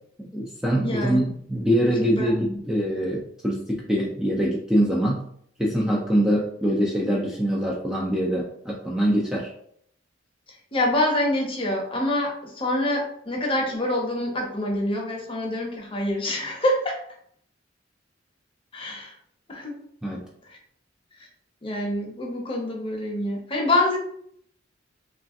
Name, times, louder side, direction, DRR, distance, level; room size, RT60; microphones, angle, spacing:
voice 1, 0.2-5.2 5.6-9.5 20.0-20.2, equal, 5° right, -3 dB, 0.3 m, -24 dB
voice 2, 0.8-1.2 1.8-2.6 10.7-17.0 18.7-19.1 19.5-19.8 20.5-20.6 21.6-24.0, left 1 dB, 30° left, -1 dB, 0.7 m, -26 dB
3.1 x 2.4 x 2.5 m, 0.67 s
head